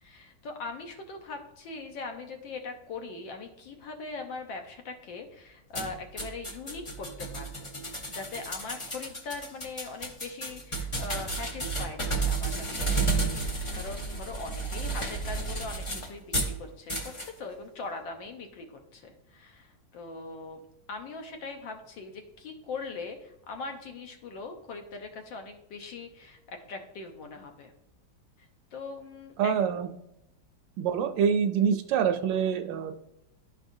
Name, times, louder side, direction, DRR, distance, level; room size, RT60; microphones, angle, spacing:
voice 1, 0.0-7.7 8.1-20.6 20.9-27.7 28.7-29.5, left 3 dB, 75° left, 5 dB, 1.6 m, -41 dB
sound 1, 5.7-16.6 16.9-17.3, right 3 dB, 45° left, 0.4 m, -32 dB
voice 2, 29.4-29.9 30.8-32.9, right 7 dB, 80° right, 7 dB, 1.2 m, -26 dB
12.0 x 4.7 x 2.6 m, 0.83 s
omnidirectional pair, 2.1 m